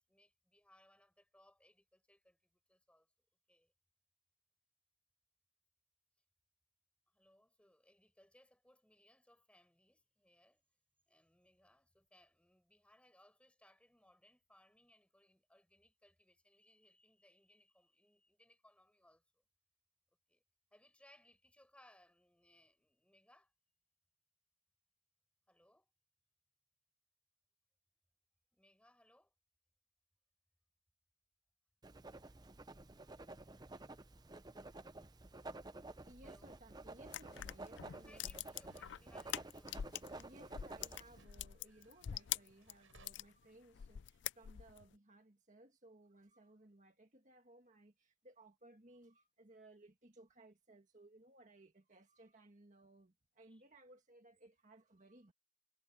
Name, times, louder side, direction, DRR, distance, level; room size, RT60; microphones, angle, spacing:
voice 1, 0.0-3.1 3.5-3.7 7.1-10.7 11.1-19.4 20.1-20.4 20.7-23.5 25.5-25.9 28.5-29.3 36.2-36.6 37.7-40.0 53.4-53.6, left 1 dB, 5° left, 4.9 m, -69 dB
Writing, 31.8-41.2, right 2 dB, 20° right, 0.7 m, -52 dB
voice 2, 36.1-38.4 40.1-55.3, right 2 dB, 35° right, 1.8 m, -62 dB
sound 1, 37.1-40.2 40.5-43.3 43.7-44.8, left 11 dB, 60° left, 0.4 m, -44 dB
sound 2, 37.2-43.1, right 4 dB, 80° right, 6.2 m, -72 dB
head